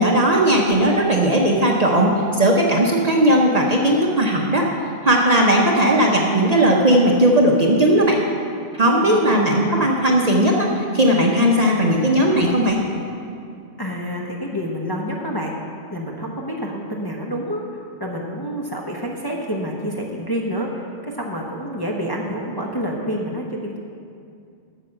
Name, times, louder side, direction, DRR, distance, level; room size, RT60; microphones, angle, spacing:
voice 1, 0.0-4.7 5.0-8.2 8.8-12.8, right 1 dB, 40° right, 0 dB, 0.8 m, -17 dB
voice 2, 9.0-9.4 9.7-9.9 13.8-15.5 15.9-17.6 18.0-23.8, equal, 20° left, -2 dB, 0.8 m, -28 dB
8.7 x 7.0 x 6.4 m, 2.4 s
omnidirectional pair, 1.2 m